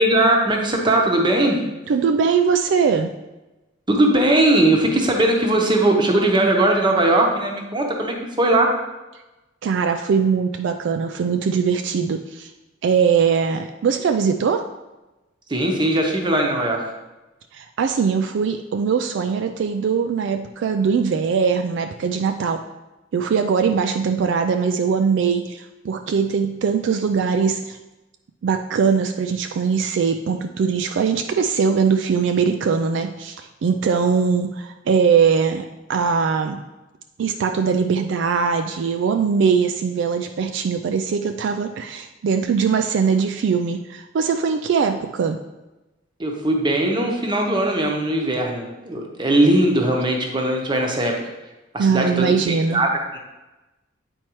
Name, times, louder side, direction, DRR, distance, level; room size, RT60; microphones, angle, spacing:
voice 1, 0.0-1.6 3.9-8.7 15.5-16.8 46.2-51.2 51.7-53.2, right 1 dB, 25° right, 1 dB, 0.9 m, -19 dB
voice 2, 1.9-3.1 9.6-12.5 12.8-14.7 17.5-22.6 23.1-27.8 28.4-36.6 37.2-45.4 51.8-52.8, right 6 dB, 65° right, 6 dB, 0.3 m, -21 dB
8.7 x 4.4 x 3.0 m, 1.1 s
head